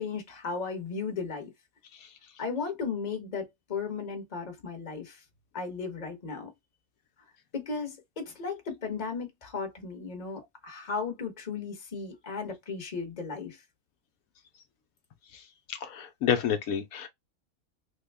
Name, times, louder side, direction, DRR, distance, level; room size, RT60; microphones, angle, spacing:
voice 1, 0.0-1.5 2.4-5.2 5.5-6.5 7.5-13.6, left 5 dB, 30° left, 1.1 m, -35 dB
voice 2, 15.7-17.1, left 8 dB, 80° left, 1.1 m, -29 dB
3.4 x 2.2 x 3.3 m
omnidirectional pair, 1.5 m